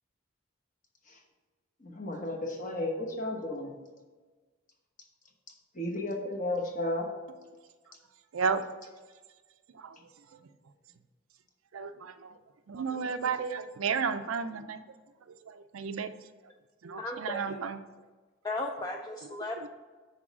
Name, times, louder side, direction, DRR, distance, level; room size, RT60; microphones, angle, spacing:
voice 1, 1.8-3.7 5.8-7.1, left 1 dB, 40° left, 2 dB, 1.1 m, -33 dB
voice 2, 11.7-12.3 12.7-14.8 15.5-16.1 16.8-17.8, right 5 dB, 85° right, 10 dB, 0.5 m, -32 dB
voice 3, 17.0-17.6 18.4-19.7, left 2 dB, 20° left, 2 dB, 0.4 m, -36 dB
6.2 x 4.0 x 6.0 m, 1.4 s
head